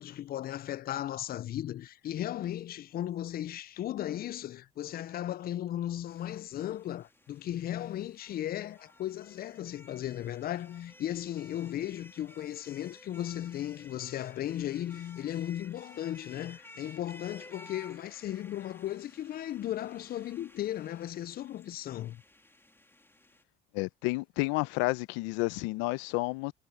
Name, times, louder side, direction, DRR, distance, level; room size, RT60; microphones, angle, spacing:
voice 1, 0.0-22.2, left 12 dB, 50° left, 0.6 m, -36 dB
sound 1, 6.1-23.4, left 1 dB, 10° left, 3.0 m, -55 dB
voice 2, 23.7-26.5, left 23 dB, 80° left, 0.8 m, -31 dB
supercardioid pair, 75°, 20 cm